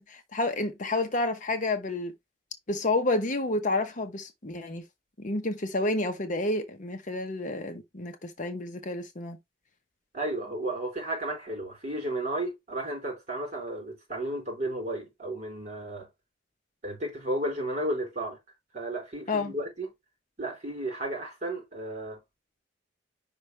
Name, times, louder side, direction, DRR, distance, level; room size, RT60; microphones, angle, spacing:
voice 1, 0.0-2.1 2.7-4.8 5.2-9.4 19.3-19.5, left 2 dB, 45° left, 0.9 m, -30 dB
voice 2, 10.1-16.1 16.8-18.4 18.7-19.9 20.4-22.2, right 1 dB, 40° right, 4.2 m, -33 dB
5.4 x 5.2 x 3.3 m
head